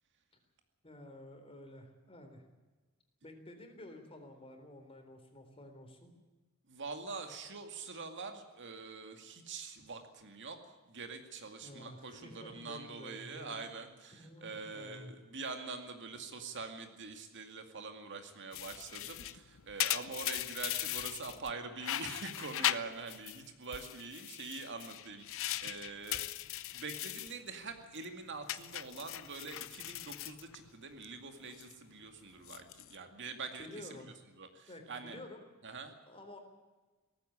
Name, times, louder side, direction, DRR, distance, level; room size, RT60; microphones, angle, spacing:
voice 1, 0.8-2.4 3.2-6.1 11.6-13.6 14.1-15.1 25.5-25.6 33.6-34.1 34.7-35.5 36.1-36.4, left 1 dB, 25° left, 5 dB, 3.7 m, -51 dB
voice 2, 6.7-26.3 26.7-34.0 34.4-35.2 35.6-35.9, right 4 dB, 55° right, 6 dB, 2.2 m, -45 dB
sound 1, 18.5-21.5 21.8-23.4 23.7-27.4 27.7-28.0 28.5-31.0 31.4-31.7 32.3-32.9, left 13 dB, 65° left, 0.8 m, -39 dB
18.5 x 14.5 x 9.9 m, 1.2 s
head